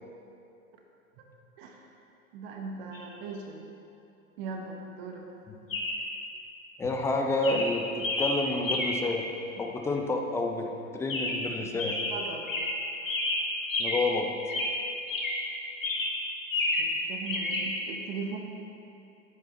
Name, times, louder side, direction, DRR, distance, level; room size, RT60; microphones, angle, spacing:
voice 1, 2.3-3.6 4.4-5.2 11.9-12.5 16.8-18.4, right 4 dB, 45° right, 1 dB, 1.1 m, -39 dB
Chirp tweet, 2.9-3.1 5.7-6.1 6.8-7.1 7.4-9.2 11.1-11.5 11.8-14.2 14.5-15.5 15.8-17.0 17.3-17.7, left 2 dB, 65° left, 1.4 m, -30 dB
voice 2, 6.8-9.3 9.6-10.7 10.9-12.0 13.8-14.3, left 2 dB, 5° left, 2 dB, 0.5 m, -29 dB
9.1 x 7.6 x 4.2 m, 2.7 s
figure-of-eight pair, 90°, 42 cm